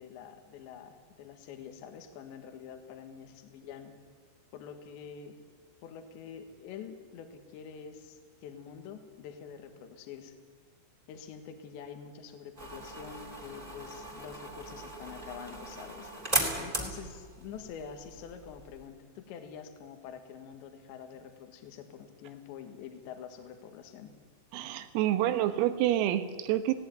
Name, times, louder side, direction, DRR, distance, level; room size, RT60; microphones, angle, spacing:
voice 1, 0.0-3.9 4.5-5.4 5.8-10.3 11.1-16.1 16.6-24.2, left 7 dB, 65° left, 7 dB, 3.5 m, -46 dB
sound 1, 12.6-18.9, right 1 dB, 10° right, 2.1 m, -37 dB
voice 2, 24.5-26.7, right 13 dB, 85° right, 11 dB, 3.9 m, -28 dB
18.5 x 17.5 x 9.5 m, 1.5 s
omnidirectional pair, 6.0 m